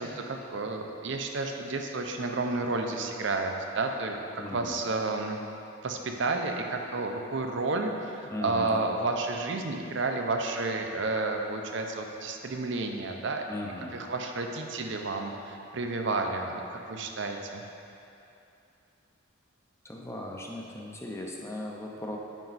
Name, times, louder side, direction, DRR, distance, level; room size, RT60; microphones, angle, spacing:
voice 1, 0.0-5.4 5.8-13.4 13.9-17.6, right 3 dB, 60° right, 3 dB, 0.6 m, -31 dB
voice 2, 4.4-4.8 8.3-8.8 13.5-14.0 19.8-22.2, left 1 dB, 15° left, -1 dB, 0.6 m, -38 dB
9.0 x 5.2 x 4.1 m, 2.7 s
head